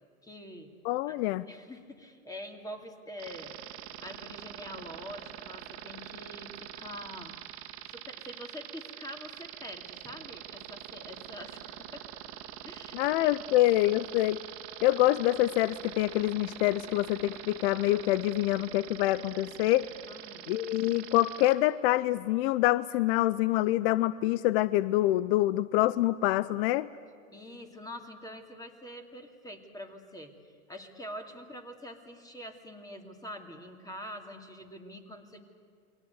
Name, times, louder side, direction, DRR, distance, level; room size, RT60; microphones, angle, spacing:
voice 1, 0.2-0.7 1.1-1.2 1.5-3.5 4.0-7.3 7.9-12.0 12.6-13.3 20.1-20.5 27.3-35.4, equal, 10° left, 4 dB, 2.6 m, -45 dB
voice 2, 0.8-1.4 12.9-14.4 14.8-19.9 20.5-26.9, left 16 dB, 50° left, 17 dB, 0.7 m, -26 dB
sound 1, 3.2-21.6, right 13 dB, 45° right, 2.2 m, -44 dB
29.0 x 23.0 x 8.2 m, 2.2 s
hypercardioid pair, 115°, 41 cm